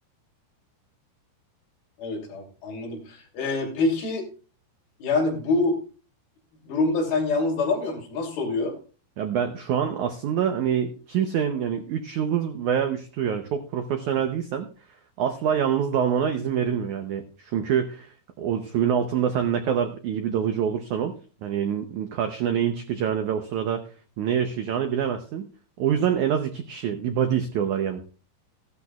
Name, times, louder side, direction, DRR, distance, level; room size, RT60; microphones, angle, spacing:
voice 1, 2.0-4.2 5.0-5.8 6.7-8.8, left 3 dB, 65° left, 0 dB, 4.7 m, -25 dB
voice 2, 9.2-14.7 15.2-21.1 21.4-23.8 24.2-25.5 25.8-28.0, right 8 dB, 85° right, 6 dB, 1.7 m, -26 dB
15.5 x 12.5 x 2.4 m, 0.37 s
omnidirectional pair, 4.7 m